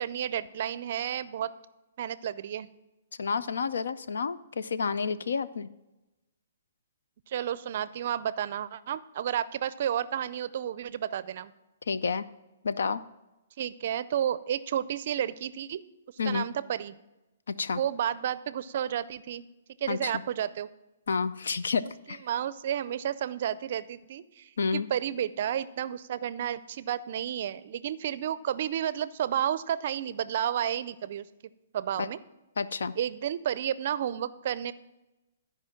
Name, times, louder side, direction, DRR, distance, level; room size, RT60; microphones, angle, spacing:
voice 1, 0.0-1.5 2.0-2.7 7.3-11.5 13.6-15.8 16.3-17.0 17.7-19.5 19.8-20.7 22.3-31.3 31.7-32.2 33.0-34.7, right 10 dB, 50° right, 16 dB, 0.4 m, -31 dB
voice 2, 3.2-5.7 11.9-12.2 12.6-13.0 16.2-16.5 17.5-17.8 19.9-20.1 21.1-22.2 24.6-24.9 32.0-32.1 32.6-32.9, left 5 dB, 90° left, 15 dB, 0.5 m, -30 dB
12.5 x 5.0 x 5.8 m, 1.0 s
hypercardioid pair, 160°, 0 cm